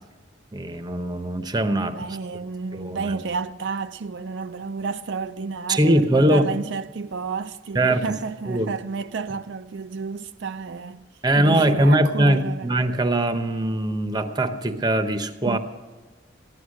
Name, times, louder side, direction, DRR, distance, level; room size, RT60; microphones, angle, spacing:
voice 1, 0.5-1.9 2.7-3.2 5.7-6.5 7.7-8.1 8.5-8.7 11.2-15.6, right 1 dB, 20° right, 0.8 m, -21 dB
voice 2, 1.8-11.0 11.4-12.7 15.5-15.6, right 4 dB, 65° right, 0.4 m, -31 dB
15.5 x 11.5 x 6.4 m
head